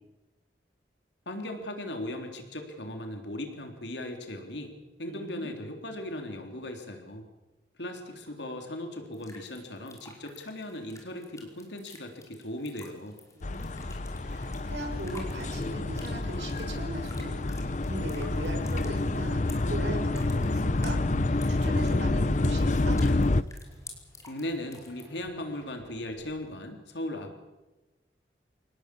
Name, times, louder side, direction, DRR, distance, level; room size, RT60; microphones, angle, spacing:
voice 1, 1.3-7.3 7.8-13.2 24.2-27.4, left 1 dB, 80° left, 4 dB, 3.5 m, -38 dB
voice 2, 5.1-5.5 13.3-21.0 21.3-23.0, right 1 dB, 80° right, 2 dB, 6.9 m, -39 dB
sound 1, 9.1-25.0, left 3 dB, 20° left, 5.1 m, -52 dB
sound 2, 13.4-23.4, left 2 dB, 45° left, 0.8 m, -28 dB
sound 3, 14.8-26.7, equal, 10° right, 7.7 m, -47 dB
27.0 x 19.0 x 8.5 m, 1.1 s
head